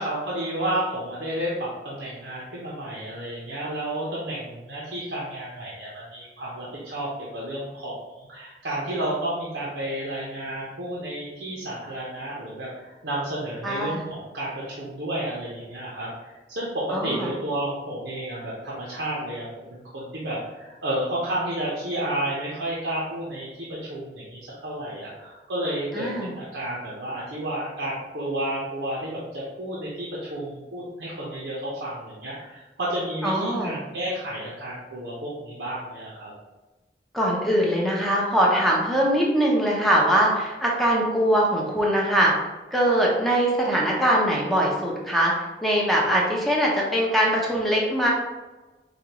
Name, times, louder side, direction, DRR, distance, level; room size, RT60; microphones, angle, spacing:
voice 1, 0.0-7.1 7.3-36.3, right 1 dB, 75° right, -6 dB, 0.8 m, -31 dB
voice 2, 13.6-14.1 16.9-17.3 25.9-26.3 33.2-33.8 37.1-42.3 42.7-45.3 45.6-48.1, equal, ahead, -3 dB, 0.6 m, -22 dB
4.9 x 2.3 x 2.9 m, 1.2 s
head